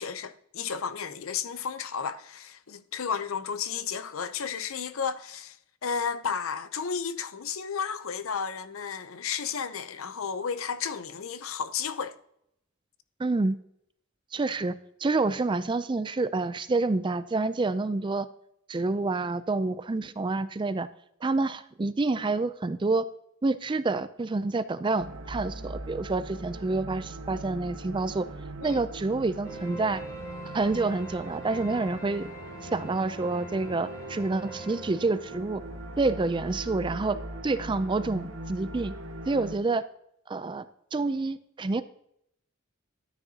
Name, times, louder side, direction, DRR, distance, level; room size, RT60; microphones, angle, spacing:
voice 1, 0.0-5.5 5.8-12.1 28.6-28.8, left 6 dB, 75° left, 0.7 m, -33 dB
voice 2, 13.2-13.6 14.3-14.7 15.0-18.3 18.7-20.9 21.2-23.0 23.4-28.3 28.6-30.0 30.5-32.3 32.6-35.6 36.0-37.2 37.4-38.9 39.3-39.8 40.3-40.7 40.9-41.8, right 3 dB, 20° right, 0.4 m, -28 dB
sound 1, 25.0-39.6, right 1 dB, 70° right, 1.1 m, -41 dB
sound 2, 29.4-35.8, right 2 dB, 20° left, 3.5 m, -44 dB
13.5 x 9.6 x 2.8 m
head